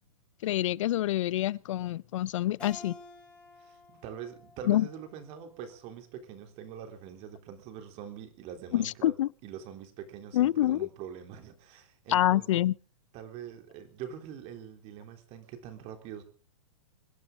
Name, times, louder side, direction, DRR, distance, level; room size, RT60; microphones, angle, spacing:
voice 1, 0.4-3.0 4.7-4.9 8.7-9.3 10.3-10.9 12.1-12.7, left 14 dB, 65° left, 0.6 m, -26 dB
Keyboard (musical), 2.6-5.8, left 3 dB, 5° left, 6.6 m, -52 dB
voice 2, 3.6-9.1 9.4-12.6 13.1-16.2, right 8 dB, 35° right, 3.4 m, -44 dB
26.0 x 11.0 x 3.8 m
hypercardioid pair, 135°, 17 cm